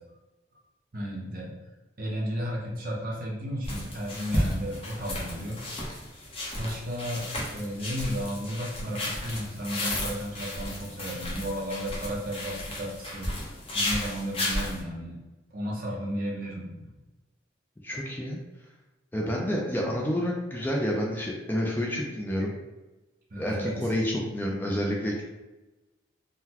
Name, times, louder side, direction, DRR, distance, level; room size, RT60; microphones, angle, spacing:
voice 1, 0.9-1.5 2.0-5.6 6.6-13.3 13.7-15.2 15.5-16.9 23.3-23.8, equal, 50° right, -3 dB, 0.8 m, -33 dB
sound 1, 3.6-14.8, left 1 dB, 30° left, 0.7 m, -33 dB
voice 2, 17.8-18.4 19.1-22.5 23.4-25.2, equal, 10° left, -2 dB, 0.4 m, -29 dB
3.8 x 2.1 x 2.8 m, 1.1 s
head